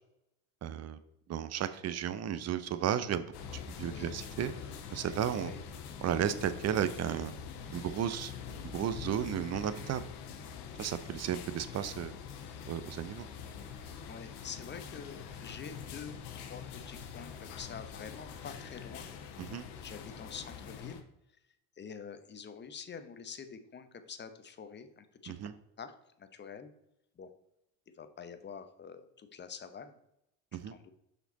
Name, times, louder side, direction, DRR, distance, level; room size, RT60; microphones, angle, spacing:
voice 1, 0.6-1.0 1.3-3.3 3.5-4.5 4.9-5.5 6.0-7.3 7.7-8.3 8.7-10.0 10.8-12.1 12.7-13.3 19.4-19.7 25.3-25.5 30.5-30.7, right 9 dB, 35° right, 12 dB, 0.5 m, -33 dB
sound 1, 3.3-21.0, left 7 dB, 60° left, 1.0 m, -45 dB
voice 2, 14.1-16.2 16.5-19.1 19.8-21.0 21.8-25.3 25.8-26.7 27.2-27.3 27.9-30.0 30.5-30.9, left 6 dB, 25° left, 10 dB, 0.7 m, -46 dB
5.6 x 4.4 x 4.1 m, 0.82 s
hypercardioid pair, 75°, 46 cm